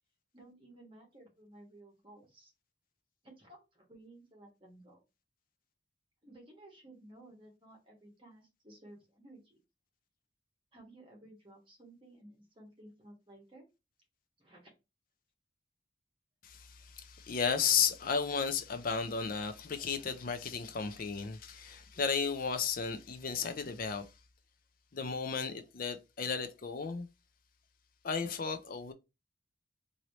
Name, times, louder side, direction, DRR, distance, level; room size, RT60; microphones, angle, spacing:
voice 1, 0.3-2.5 3.2-5.0 6.2-9.6 10.7-13.7 14.4-14.7, right 1 dB, 30° right, 1.3 m, -56 dB
voice 2, 16.4-24.1 24.9-27.1 28.0-28.9, left 6 dB, 50° left, 0.5 m, -34 dB
2.9 x 2.7 x 3.1 m
head